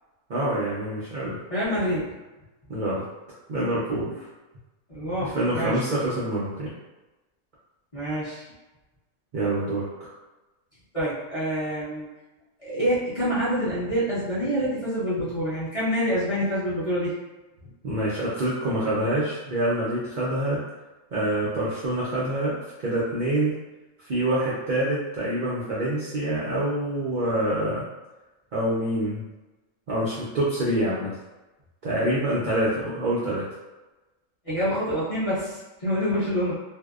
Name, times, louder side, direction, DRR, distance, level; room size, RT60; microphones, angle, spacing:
voice 1, 0.3-1.4 2.7-3.0 3.5-4.3 5.2-6.7 9.3-10.1 17.8-20.6 21.1-23.6 24.0-27.8 28.5-29.2 29.9-31.1 31.8-33.5, right 1 dB, 70° right, -8 dB, 0.4 m, -26 dB
voice 2, 1.5-2.1 4.9-5.8 7.9-8.4 10.9-12.1 12.6-17.2 34.4-36.6, equal, 35° left, -12 dB, 0.7 m, -26 dB
2.6 x 2.0 x 2.3 m, 1.1 s
omnidirectional pair, 1.5 m